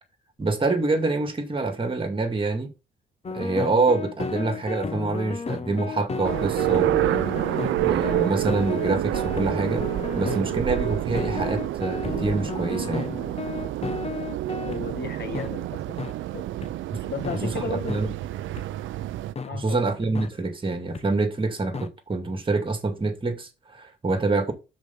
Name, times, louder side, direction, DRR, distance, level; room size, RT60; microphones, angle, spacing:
voice 1, 0.4-2.7 3.3-7.6 7.8-9.9 10.2-13.1 17.4-18.1 19.5-24.5, right 3 dB, 25° right, 2.3 m, -26 dB
sound 1, 3.2-14.8 15.3-15.5 16.0-16.1 16.6-16.7 17.2-17.4 17.9-18.0 18.6-18.7 19.4-19.5 20.1-20.3 20.9-21.0 21.7-21.9, left 5 dB, 30° left, 0.9 m, -33 dB
sound 2, 6.2-19.3, right 14 dB, 80° right, 0.6 m, -28 dB
voice 2, 14.6-16.0 16.3-16.4 17.1-18.0 19.4-19.9, left 4 dB, 55° left, 1.7 m, -34 dB
6.1 x 5.1 x 5.7 m
cardioid pair, 90°, 20 cm